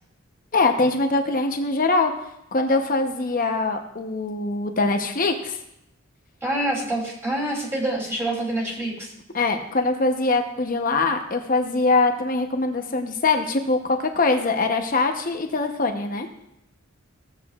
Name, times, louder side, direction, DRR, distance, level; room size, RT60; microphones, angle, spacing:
voice 1, 0.5-2.1 2.5-5.6 9.3-16.3, left 3 dB, 40° left, 5 dB, 0.9 m, -23 dB
voice 2, 6.4-9.1, right 1 dB, 10° right, -5 dB, 3.0 m, -26 dB
15.5 x 8.1 x 2.4 m, 0.79 s
head